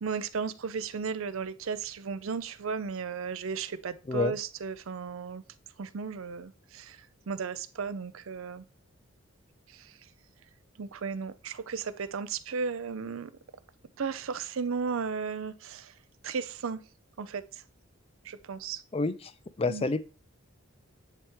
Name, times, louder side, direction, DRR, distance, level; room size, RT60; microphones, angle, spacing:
voice 1, 0.0-5.4 5.8-8.6 9.7-9.9 10.8-13.3 14.0-15.9 16.2-16.8 17.2-17.6 18.2-18.8 19.7-19.9, right 5 dB, 75° right, 0.5 m, -35 dB
voice 2, 18.9-19.3 19.6-20.0, left 3 dB, 25° left, 0.4 m, -28 dB
9.8 x 3.5 x 3.1 m
head